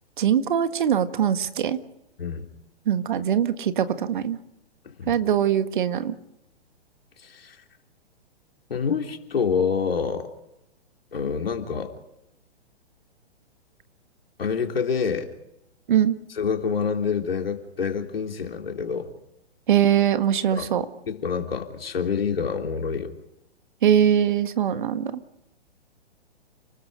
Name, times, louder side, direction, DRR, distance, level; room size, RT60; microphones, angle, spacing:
voice 1, 0.2-1.8 2.9-4.4 5.1-6.2 15.9-16.2 19.7-20.9 23.8-25.1, right 9 dB, 50° right, 11 dB, 1.7 m, -22 dB
voice 2, 7.2-7.6 8.7-10.3 11.1-11.9 14.4-15.3 16.4-19.1 20.5-20.7 21.1-23.1, left 6 dB, 60° left, 4 dB, 3.5 m, -27 dB
30.0 x 20.0 x 5.1 m, 0.86 s
figure-of-eight pair, 120°, 32 cm